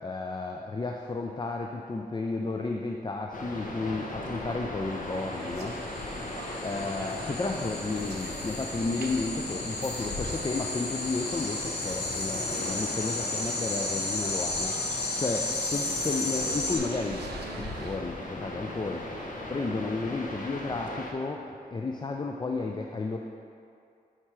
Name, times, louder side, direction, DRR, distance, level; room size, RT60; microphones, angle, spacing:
voice 1, 0.0-5.8 6.6-17.3 17.6-19.1 19.5-23.2, left 3 dB, 25° left, 2 dB, 0.4 m, -33 dB
sound 1, 3.3-21.1, left 1 dB, 50° left, 0.9 m, -38 dB
sound 2, 5.4-18.0, right 4 dB, 85° right, 0.5 m, -46 dB
sound 3, 5.5-16.8, left 2 dB, 80° left, 0.9 m, -34 dB
5.8 x 4.4 x 4.6 m, 2.4 s
cardioid pair, 40°, 17 cm